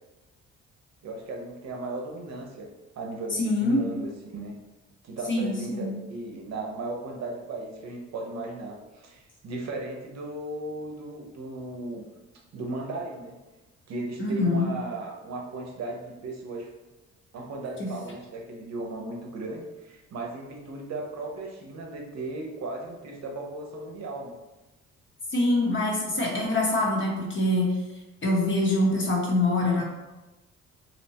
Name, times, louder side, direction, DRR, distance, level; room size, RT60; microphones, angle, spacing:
voice 1, 1.0-2.7 3.0-4.5 5.0-12.0 12.5-13.4 13.9-16.7 17.3-24.4, right 2 dB, 60° right, 1 dB, 0.7 m, -36 dB
voice 2, 3.3-3.9 5.3-5.9 14.2-14.7 17.8-17.9 25.3-27.7 28.2-29.8, left 2 dB, 40° left, -2 dB, 0.8 m, -24 dB
2.8 x 2.1 x 2.7 m, 1.1 s
cardioid pair, 90°, 30 cm